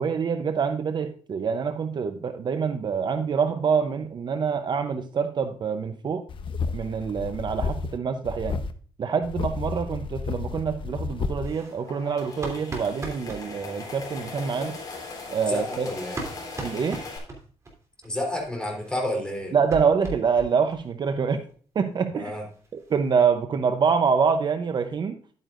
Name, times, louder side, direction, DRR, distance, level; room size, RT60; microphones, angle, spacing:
voice 1, 0.0-6.2 6.7-8.6 9.0-14.8 15.3-15.9 16.6-17.0 19.5-21.4 21.7-22.3 22.7-25.2, right 6 dB, 45° right, 8 dB, 0.7 m, -26 dB
sound 1, 6.3-8.0 8.2-8.7 9.2-11.5, left 4 dB, 55° left, 0.9 m, -31 dB
sound 2, 11.4-13.4 14.6-17.7 18.0-18.1 18.4-18.5 18.7-20.8 21.1-21.2 21.5-21.6 21.9-22.0 22.3-23.1, right 2 dB, 30° right, 3.0 m, -39 dB
sound 3, 11.6-17.2, left 3 dB, 35° left, 3.9 m, -39 dB
voice 2, 15.5-16.2 18.0-19.6 22.1-22.5, left 1 dB, 10° left, 1 dB, 3.5 m, -30 dB
11.0 x 9.1 x 2.5 m, 0.42 s
cardioid pair, 115°, 10 cm